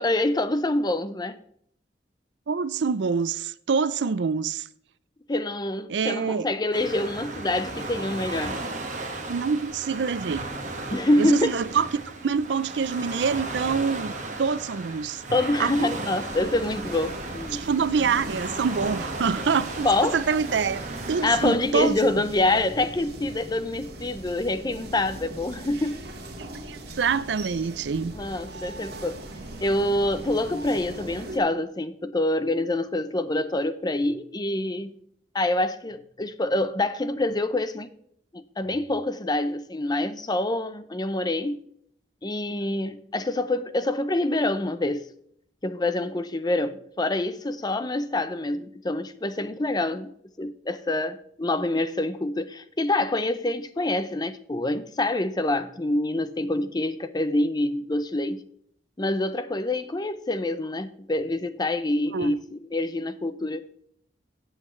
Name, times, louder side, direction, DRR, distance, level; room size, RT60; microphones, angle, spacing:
voice 1, 0.0-1.4 5.3-8.6 10.9-11.5 15.3-17.7 19.8-20.2 21.2-26.0 28.2-29.2 29.6-34.9 35.3-37.9 38.3-41.6 42.2-45.1 45.6-58.4 59.0-63.7, left 2 dB, 25° left, 0.6 m, -26 dB
voice 2, 2.5-4.7 5.9-6.5 9.3-10.5 11.2-11.9 12.2-14.1 14.4-15.2 15.6-15.9 17.5-19.9 20.1-20.8 21.1-22.1 26.7-28.1 62.1-62.3, right 5 dB, 85° right, 0.5 m, -26 dB
Waves surf, 6.7-21.6, right 2 dB, 45° right, 1.5 m, -35 dB
sound 1, 16.3-31.4, right 1 dB, 65° right, 2.0 m, -40 dB
14.5 x 8.2 x 3.2 m
head